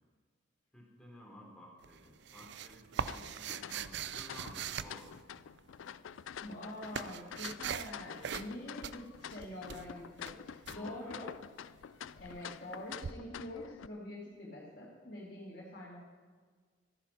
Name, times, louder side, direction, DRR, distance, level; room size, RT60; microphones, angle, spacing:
voice 1, 0.7-5.1 10.7-11.2, left 1 dB, 5° left, -3 dB, 3.4 m, -54 dB
sound 1, 1.8-5.7 6.4-8.0 8.2-8.6 8.8-10.8 13.0-13.1, right 7 dB, 60° right, 0.5 m, -41 dB
sound 2, 3.0-13.9, left 8 dB, 85° left, 0.4 m, -48 dB
voice 2, 6.4-11.3 12.2-16.0, left 1 dB, 45° left, -6 dB, 2.4 m, -45 dB
14.0 x 10.0 x 5.7 m, 1.5 s
head